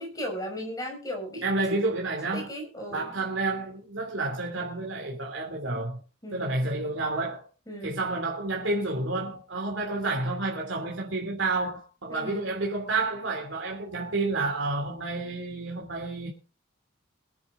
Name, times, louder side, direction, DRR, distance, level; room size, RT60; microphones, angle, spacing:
voice 1, 0.0-1.5 2.3-3.1 6.2-6.5 7.7-8.0 12.1-12.5, equal, 20° left, 5.7 m, -36 dB
voice 2, 1.4-2.5 2.9-6.0 6.3-7.4 7.8-16.3, right 2 dB, 70° right, 3.0 m, -30 dB
22.5 x 9.8 x 3.8 m
head